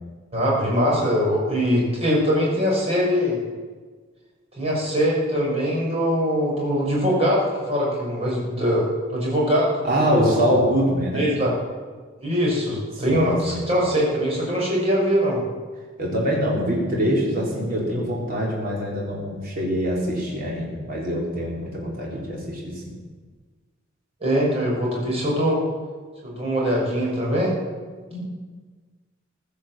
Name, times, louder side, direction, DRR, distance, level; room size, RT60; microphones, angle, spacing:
voice 1, 0.3-3.4 4.6-10.4 11.1-11.6 12.2-15.4 24.2-25.6 26.2-27.6, equal, 30° right, -4 dB, 5.9 m, -22 dB
voice 2, 9.8-11.3 13.1-13.7 16.0-22.9 28.1-28.2, equal, 50° right, -4 dB, 4.0 m, -24 dB
15.5 x 12.0 x 7.5 m, 1.5 s
head